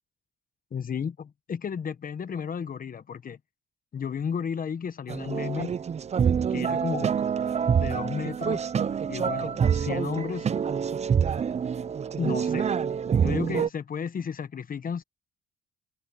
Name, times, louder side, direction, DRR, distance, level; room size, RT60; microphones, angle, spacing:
voice 1, 0.7-3.4 3.9-5.7 6.5-7.1 7.8-8.6 9.1-10.5 12.2-12.7 13.2-15.0, left 7 dB, 45° left, 1.2 m, -33 dB
sound 1, 5.1-13.7, right 7 dB, 35° right, 0.5 m, -26 dB
cardioid pair, 90°, 20 cm